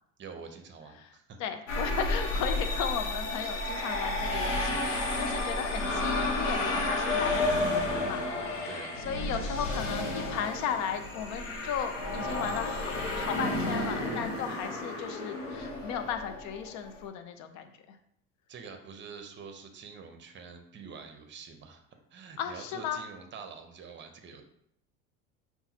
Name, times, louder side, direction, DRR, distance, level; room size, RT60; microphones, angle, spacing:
voice 1, 0.2-1.4 8.6-9.0 18.5-21.8 22.1-24.4, right 5 dB, 30° right, 5 dB, 0.7 m, -46 dB
voice 2, 1.4-8.2 8.6-17.7 22.4-23.0, left 8 dB, 50° left, 8 dB, 0.6 m, -35 dB
sound 1, 1.7-16.9, left 2 dB, 90° left, 0.9 m, -31 dB
5.4 x 2.3 x 2.9 m, 0.72 s
hypercardioid pair, 85°, 37 cm